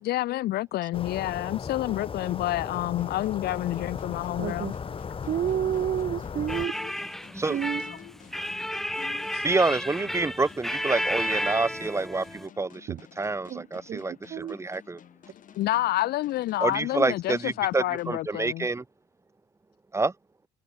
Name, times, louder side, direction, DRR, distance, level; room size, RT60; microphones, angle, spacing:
voice 1, 0.0-4.8 6.8-6.9 9.0-9.4 15.6-18.7, left 15 dB, 70° left, 1.0 m, -29 dB
sound 1, 0.9-6.7, left 6 dB, 30° left, 2.0 m, -36 dB
sound 2, 2.2-18.8, left 9 dB, 50° left, 6.2 m, -54 dB
voice 2, 4.4-4.7 5.3-6.7 7.5-7.8 12.9-13.0 13.5-14.0 14.3-14.5, right 10 dB, 50° right, 1.5 m, -29 dB
sound 3, 6.5-12.5, equal, ahead, 0.6 m, -32 dB
voice 3, 9.4-15.0 16.6-18.8 19.9-20.1, right 3 dB, 15° right, 1.7 m, -28 dB
cardioid pair, 110°, 17 cm